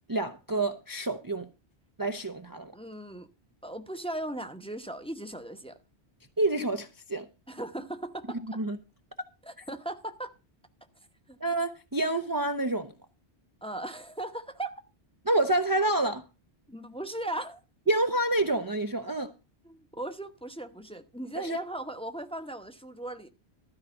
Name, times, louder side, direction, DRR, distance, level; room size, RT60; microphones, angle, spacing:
voice 1, 0.1-1.5 2.0-2.7 6.4-7.3 8.5-8.8 11.4-12.9 15.3-16.2 17.9-19.3 21.4-21.6, right 2 dB, 20° right, 0.7 m, -28 dB
voice 2, 2.7-3.3 3.6-5.8 7.5-8.6 9.4-10.3 11.3-11.4 13.6-14.8 16.7-17.6 19.6-23.3, right 1 dB, 5° left, 0.9 m, -38 dB
13.0 x 4.8 x 8.8 m
omnidirectional pair, 1.1 m